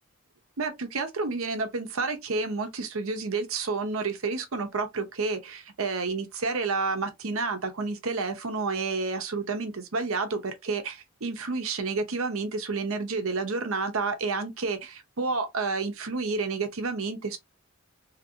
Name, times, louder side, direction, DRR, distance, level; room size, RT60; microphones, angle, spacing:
voice 1, 0.6-17.4, right 4 dB, 75° right, 0.8 m, -30 dB
2.9 x 2.6 x 2.7 m
head